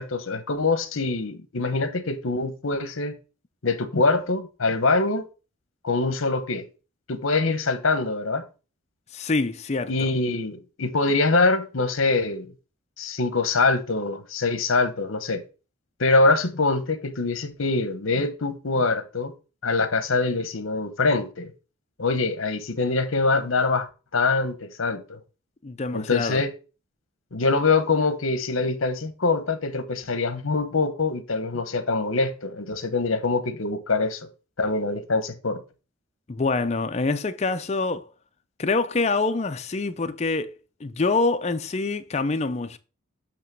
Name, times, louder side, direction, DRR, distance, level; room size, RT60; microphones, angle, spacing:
voice 1, 0.0-3.2 3.6-5.3 5.8-6.6 7.1-8.4 9.9-12.5 13.0-15.4 16.0-19.3 19.6-21.5 22.0-25.2 25.9-26.5 27.3-34.3 34.6-35.6, left 3 dB, 70° left, 0.9 m, -24 dB
voice 2, 9.1-10.1 25.6-26.4 36.3-38.1 38.6-40.6 40.8-42.8, left 3 dB, 30° left, 0.5 m, -25 dB
8.3 x 3.0 x 6.0 m
head